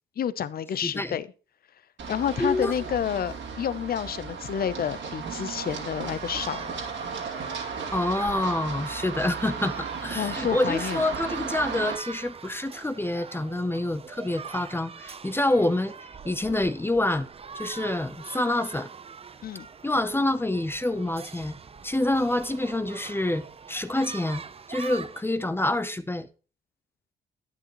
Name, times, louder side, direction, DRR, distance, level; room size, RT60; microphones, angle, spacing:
voice 1, 0.2-1.3 2.1-6.7 10.1-11.0 19.4-19.7, left 9 dB, 50° left, 0.7 m, -29 dB
voice 2, 0.8-1.1 2.4-2.7 7.9-16.0 16.2-17.3 17.5-18.9 19.8-21.6 21.8-24.4 24.7-26.3, left 1 dB, 10° left, 0.7 m, -27 dB
Run, 2.0-11.9, right 5 dB, 70° right, 2.4 m, -35 dB
sound 1, 5.6-25.2, right 5 dB, 30° right, 0.6 m, -43 dB
10.5 x 9.1 x 3.0 m
cardioid pair, 90°, 20 cm